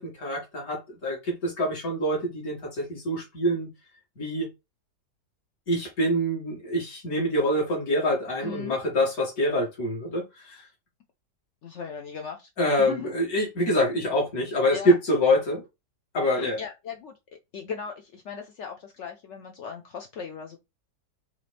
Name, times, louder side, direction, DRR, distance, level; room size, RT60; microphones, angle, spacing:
voice 1, 0.0-3.7 4.2-4.5 5.7-10.6 12.6-15.6 16.1-16.6, equal, 55° left, 2.5 m, -25 dB
voice 2, 8.4-8.8 11.6-12.5 12.8-13.1 14.7-15.0 16.3-17.2 17.5-20.6, left 6 dB, 80° left, 0.6 m, -38 dB
4.9 x 2.9 x 3.4 m
omnidirectional pair, 1.9 m